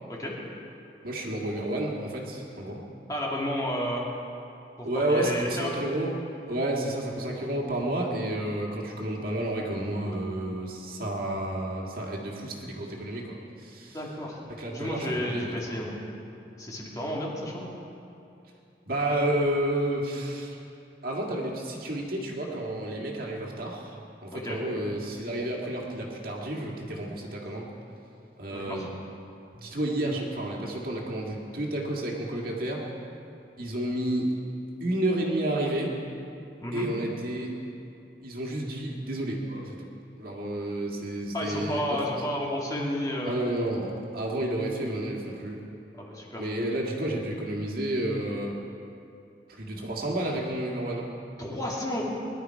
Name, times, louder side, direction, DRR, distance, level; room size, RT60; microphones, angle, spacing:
voice 1, 1.0-2.8 4.8-6.2 6.5-14.0 14.6-15.8 18.9-20.6 21.0-24.0 24.2-27.7 28.4-28.9 29.5-32.8 33.6-34.3 34.8-35.9 36.7-37.6 38.2-39.9 40.2-41.8 43.3-45.6 46.4-48.5 49.6-51.2, right 1 dB, 55° right, -2 dB, 2.1 m, -30 dB
voice 2, 3.1-4.1 4.8-5.7 13.9-14.4 14.7-16.0 16.6-17.7 24.3-24.6 28.5-28.9 36.6-36.9 41.3-43.4 45.9-46.5 51.4-52.0, equal, 20° left, -3 dB, 2.4 m, -32 dB
21.0 x 11.5 x 4.7 m, 2.6 s
head